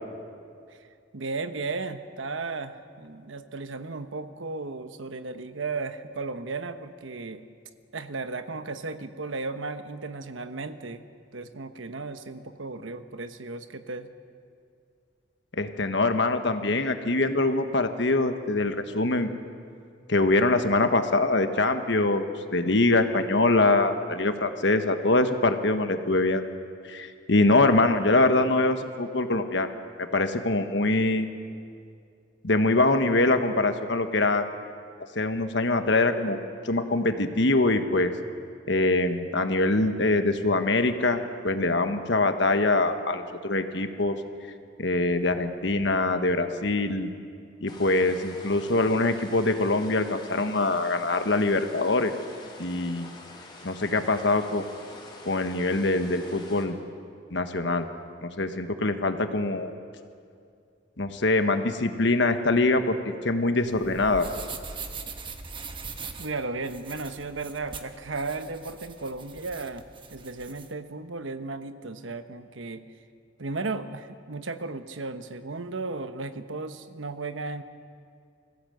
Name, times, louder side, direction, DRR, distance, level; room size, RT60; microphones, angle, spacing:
voice 1, 1.1-7.4 7.9-11.0 11.3-14.1 66.2-72.9 73.4-77.6, right 3 dB, 90° right, 9 dB, 1.1 m, -35 dB
voice 2, 15.6-19.3 20.1-26.5 26.8-29.7 30.0-31.3 32.4-34.5 35.1-38.1 38.7-44.2 44.8-47.1 47.6-52.1 52.6-53.1 53.6-54.7 55.2-56.8 57.3-57.9 58.2-59.7 61.0-63.0 63.2-64.3, left 2 dB, 65° left, 7 dB, 1.4 m, -24 dB
sound 1, 47.7-56.7, left 2 dB, 25° left, 3.3 m, -46 dB
sound 2, 63.6-70.7, right 4 dB, 25° right, 1.2 m, -41 dB
25.0 x 16.0 x 7.9 m, 2.3 s
head